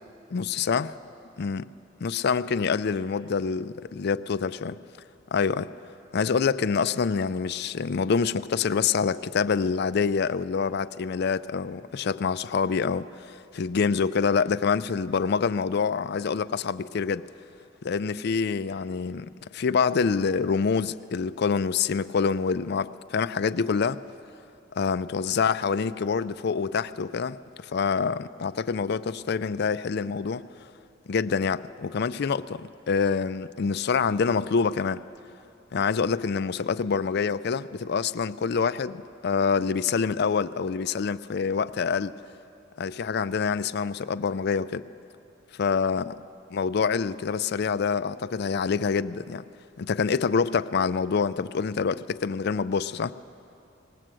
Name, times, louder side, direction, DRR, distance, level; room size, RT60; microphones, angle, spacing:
voice 1, 0.3-0.9 1.4-1.7 2.0-4.8 5.3-5.7 6.1-17.2 17.8-24.0 24.8-27.4 27.6-30.5 31.1-35.0 35.7-42.1 42.8-44.8 45.5-46.1 46.5-49.4 49.8-53.1, left 5 dB, 55° left, 14 dB, 0.4 m, -26 dB
19.5 x 17.5 x 7.6 m, 2.6 s
head